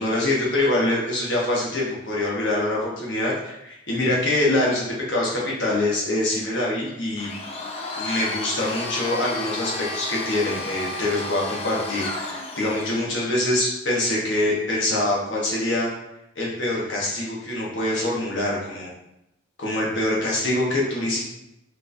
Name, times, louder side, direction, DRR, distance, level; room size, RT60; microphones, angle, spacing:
voice 1, 0.0-7.3 8.0-15.9 16.3-18.9 19.6-21.3, left 1 dB, 60° left, -4 dB, 1.2 m, -24 dB
Domestic sounds home sounds, 7.2-13.1, left 2 dB, 30° left, 0.4 m, -32 dB
4.4 x 3.1 x 2.6 m, 0.84 s
head